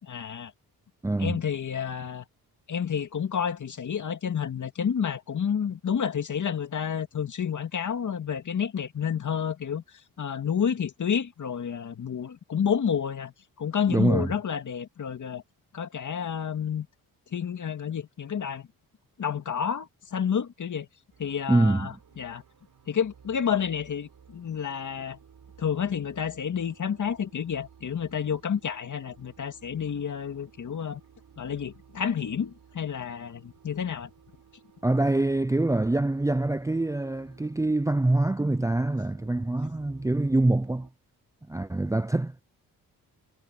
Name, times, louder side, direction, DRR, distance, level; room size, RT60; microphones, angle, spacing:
voice 1, 0.0-0.5 1.2-2.3 2.7-9.8 10.2-15.4 15.7-16.9 17.3-18.7 19.2-20.9 21.2-22.4 22.9-25.2 25.6-31.0 31.4-34.1, left 7 dB, 50° left, 2.4 m, -30 dB
voice 2, 1.0-1.4 13.9-14.3 21.5-22.0 34.8-40.9 41.5-42.4, right 2 dB, 10° right, 0.6 m, -25 dB
sound 1, 21.1-40.9, right 7 dB, 55° right, 6.4 m, -56 dB
cardioid pair, 80°, 38 cm